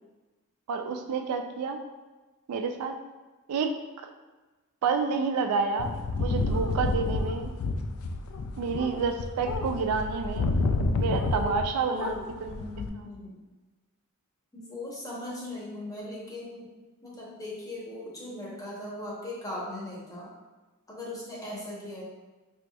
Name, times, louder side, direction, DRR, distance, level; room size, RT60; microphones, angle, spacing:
voice 1, 0.7-1.8 2.5-3.0 3.5-4.1 4.8-5.9 6.2-7.5 8.6-10.5 11.0-12.1 12.4-12.5, right 5 dB, 85° right, 5 dB, 0.3 m, -29 dB
sound 1, 5.8-11.7 12.0-12.9, left 3 dB, 70° left, 0.3 m, -29 dB
voice 2, 11.3-13.4 14.5-16.7 17.0-20.3 20.9-22.0, left 1 dB, 15° left, -5 dB, 0.8 m, -39 dB
4.6 x 2.6 x 2.2 m, 1.2 s
head